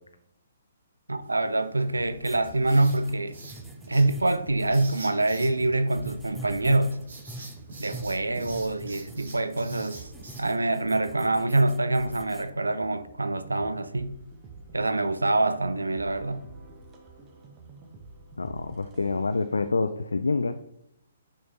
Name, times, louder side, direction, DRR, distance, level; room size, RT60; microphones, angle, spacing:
voice 1, 1.1-3.4 3.9-7.0 7.8-10.1 10.4-14.2 14.7-16.4, right 2 dB, 75° right, 0.4 m, -25 dB
Writing, 1.2-10.4, right 2 dB, 55° right, 1.8 m, -47 dB
sound 1, 1.9-19.7, right 3 dB, 20° right, 0.9 m, -49 dB
sound 2, 2.2-12.5, right 2 dB, 5° right, 0.5 m, -43 dB
voice 2, 18.4-20.5, left 3 dB, 70° left, 0.3 m, -27 dB
6.2 x 5.5 x 2.9 m
figure-of-eight pair, 125°, 0 cm